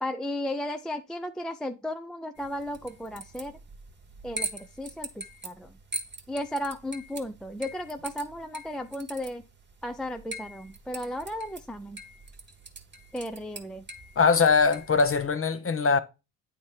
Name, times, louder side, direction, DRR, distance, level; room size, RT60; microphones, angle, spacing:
voice 1, 0.0-3.6 4.2-5.8 6.3-9.5 9.8-12.0 13.1-13.8, left 1 dB, ahead, 0.4 m, -35 dB
sound 1, 2.4-15.3, right 2 dB, 25° right, 1.3 m, -42 dB
voice 2, 14.2-16.0, left 5 dB, 30° left, 0.8 m, -22 dB
8.6 x 3.6 x 4.4 m
supercardioid pair, 60°, 44 cm